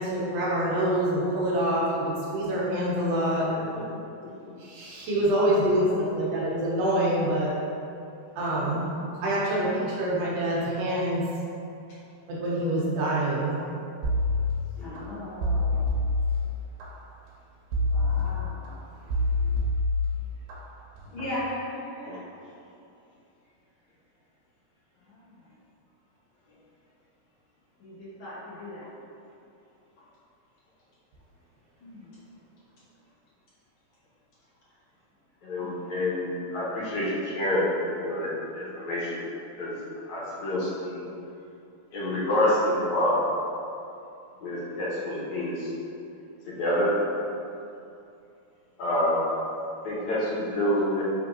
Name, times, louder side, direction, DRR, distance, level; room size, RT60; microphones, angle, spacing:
voice 1, 0.0-3.5 4.6-7.5 8.3-8.9 9.2-11.3 12.3-13.6, right 1 dB, 70° right, -6 dB, 1.7 m, -26 dB
voice 2, 5.6-6.1 9.3-10.0 14.8-16.1 17.9-18.8 21.0-22.2 25.0-25.5 27.8-28.9 31.8-32.1 35.6-36.0 40.0-40.1, left 1 dB, 55° left, -10 dB, 1.5 m, -39 dB
sound 1, 14.0-15.0 15.4-16.9 17.7-18.7 19.1-20.6 21.0-21.3, left 2 dB, 90° right, 2.1 m, -26 dB
voice 3, 35.4-37.7 38.0-39.2 39.6-39.8 40.1-41.0 41.9-43.3 44.4-45.7 46.5-46.9 48.8-49.2 49.8-51.0, left 1 dB, 75° left, -9 dB, 2.2 m, -27 dB
5.0 x 3.3 x 2.5 m, 2.6 s
omnidirectional pair, 3.4 m